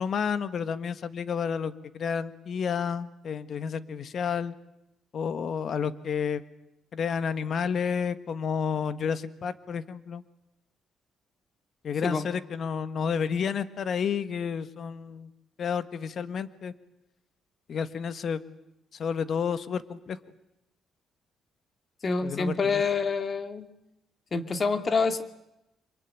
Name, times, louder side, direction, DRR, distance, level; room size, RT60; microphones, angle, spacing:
voice 1, 0.0-4.5 5.1-6.4 6.9-10.2 11.8-15.3 15.6-16.7 17.7-18.4 18.9-20.2 22.2-22.8, left 6 dB, 55° left, 13 dB, 1.5 m, -30 dB
voice 2, 22.0-23.7 24.3-25.2, left 4 dB, 40° left, 9 dB, 2.4 m, -27 dB
26.5 x 23.0 x 9.2 m, 0.87 s
cardioid pair, 90°, 0 cm